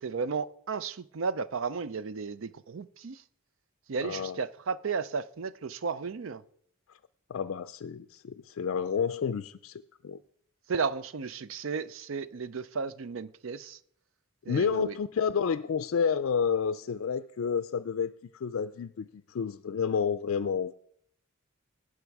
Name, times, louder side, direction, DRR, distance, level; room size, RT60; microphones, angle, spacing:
voice 1, 0.0-3.2 3.9-6.4 10.7-13.8 14.5-14.9, right 5 dB, 70° right, 0.5 m, -34 dB
voice 2, 4.0-4.4 6.9-7.0 7.3-10.2 14.5-20.7, left 6 dB, 75° left, 0.4 m, -30 dB
18.0 x 6.1 x 4.7 m
head